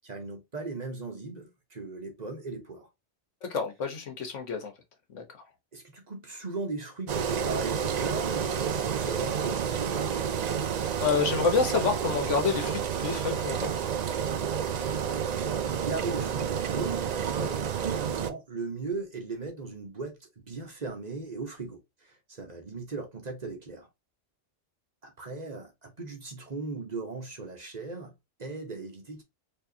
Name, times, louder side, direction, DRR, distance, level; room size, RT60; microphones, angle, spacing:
voice 1, 0.0-2.9 5.7-10.6 15.1-23.9 25.0-29.2, right 3 dB, 35° right, 1.1 m, -38 dB
voice 2, 3.5-4.7 5.1-5.2 11.0-13.7, left 5 dB, 85° left, 1.4 m, -28 dB
Engine, 7.1-18.3, right 7 dB, 60° right, 0.4 m, -30 dB
4.4 x 3.0 x 2.7 m
omnidirectional pair, 1.2 m